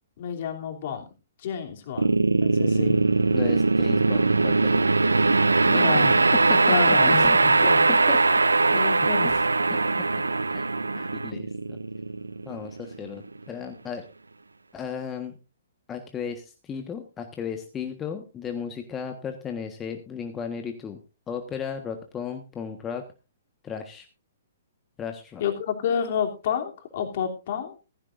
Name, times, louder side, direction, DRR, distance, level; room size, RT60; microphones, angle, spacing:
voice 1, 0.2-1.0 1.4-2.1 2.4-3.0 5.7-6.1 6.6-7.9 8.7-9.3 10.9-11.1 25.4-27.8, left 8 dB, 50° left, 3 dB, 3.1 m, -29 dB
sound 1, 2.0-13.2, right 3 dB, 90° right, 0.6 m, -21 dB
voice 2, 3.3-4.8 5.7-6.2 6.5-8.4 8.7-8.8 9.7-9.8 10.5-10.7 11.1-11.8 12.4-14.0 14.7-15.4 15.9-21.0 21.3-23.0 23.6-24.1 25.0-25.4, left 7 dB, 20° left, 5 dB, 1.4 m, -35 dB
15.5 x 15.0 x 2.6 m, 0.31 s
figure-of-eight pair, 125°, 0 cm